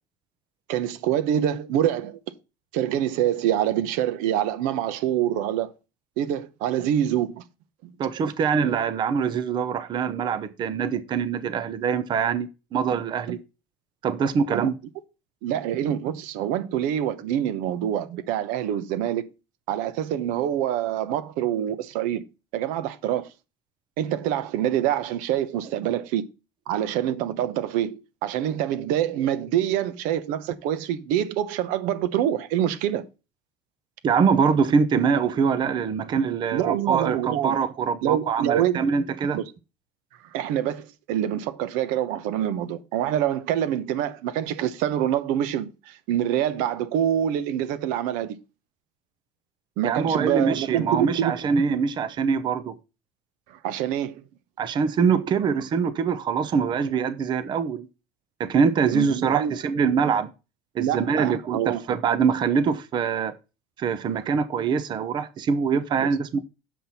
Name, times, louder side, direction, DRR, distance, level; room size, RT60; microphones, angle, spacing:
voice 1, 0.7-2.2 2.7-5.7 6.2-7.4 14.5-14.7 15.4-19.3 19.7-22.2 22.5-23.3 24.0-26.2 26.7-33.0 36.5-37.6 38.0-38.9 39.3-39.5 40.3-48.4 49.8-51.3 53.5-54.2 58.9-59.5 60.8-61.8 66.0-66.1, right 11 dB, 70° right, 1.0 m, -26 dB
voice 2, 8.0-13.4 14.0-14.7 34.0-39.4 49.8-52.8 54.6-57.9 58.4-60.3 60.7-63.3 63.8-66.5, right 6 dB, 30° right, 0.7 m, -24 dB
7.4 x 5.9 x 4.2 m
cardioid pair, 145°, 14 cm